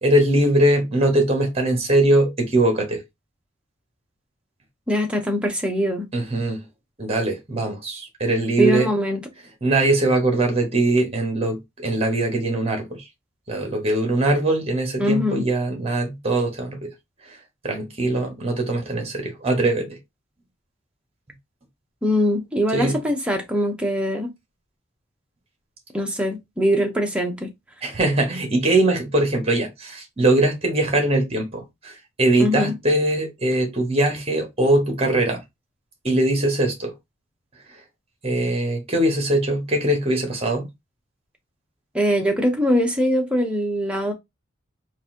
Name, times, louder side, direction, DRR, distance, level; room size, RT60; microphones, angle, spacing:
voice 1, 0.0-3.0 6.1-6.6 7.0-8.9 9.6-13.0 13.5-16.9 17.6-20.0 22.7-23.0 27.8-35.4 36.0-36.9 38.2-40.6, right 1 dB, 30° right, 1.3 m, -21 dB
voice 2, 4.9-6.1 8.6-9.2 15.0-15.4 22.0-24.3 25.9-27.5 32.4-32.7 41.9-44.1, equal, 5° right, 0.8 m, -22 dB
4.0 x 2.7 x 3.7 m
head